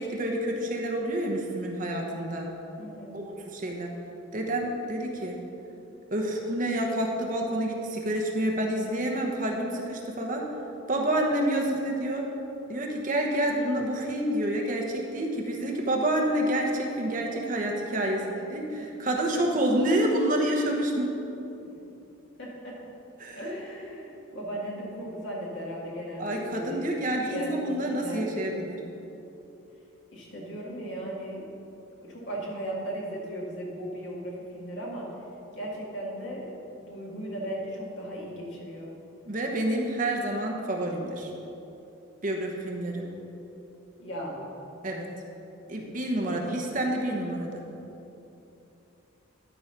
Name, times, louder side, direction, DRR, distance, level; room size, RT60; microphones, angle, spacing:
voice 1, 0.0-2.5 3.1-4.0 4.3-5.3 6.1-10.4 10.9-12.2 12.7-21.1 23.2-23.4 26.2-28.8 39.3-41.3 42.2-43.0 44.8-45.1 45.7-47.6, right 1 dB, 40° right, 0 dB, 1.0 m, -28 dB
voice 2, 2.8-3.2 18.0-18.1 18.8-18.9 22.4-22.7 23.4-26.9 27.2-28.5 30.1-31.5 32.0-35.1 35.5-38.9 44.0-44.4 46.2-46.4, right 1 dB, 60° left, -4 dB, 2.1 m, -37 dB
11.5 x 4.8 x 6.0 m, 2.9 s
head